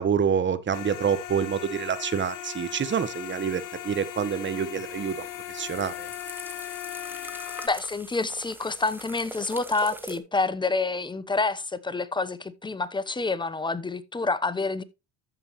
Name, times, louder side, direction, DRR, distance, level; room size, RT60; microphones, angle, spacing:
voice 1, 0.0-5.3 5.5-6.1, right 7 dB, 30° right, 1.2 m, -27 dB
sound 1, 0.7-7.7, left 13 dB, 60° left, 1.3 m, -38 dB
sound 2, 4.9-10.2, right 1 dB, 5° right, 1.2 m, -43 dB
voice 2, 7.6-14.8, left 3 dB, 15° left, 0.9 m, -28 dB
14.0 x 5.4 x 3.0 m
supercardioid pair, 90°, 35 cm